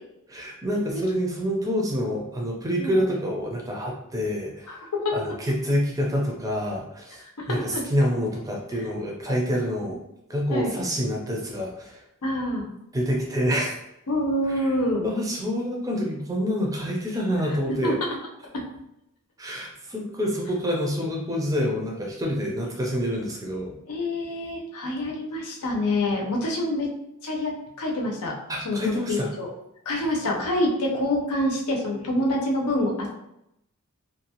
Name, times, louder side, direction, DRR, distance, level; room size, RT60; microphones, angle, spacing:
voice 1, 0.3-4.9 5.1-10.0 10.3-12.0 12.9-13.7 14.5-14.7 15.0-18.0 19.4-23.7 28.5-29.3, equal, 15° right, -1 dB, 0.5 m, -27 dB
voice 2, 4.7-5.3 7.4-7.8 10.5-10.7 12.2-12.7 14.1-15.1 17.8-17.9 23.9-26.9 27.2-27.5 27.8-28.3 28.6-29.5 29.9-33.1, left 1 dB, 85° left, -1 dB, 0.7 m, -26 dB
2.6 x 2.2 x 2.8 m, 0.82 s
head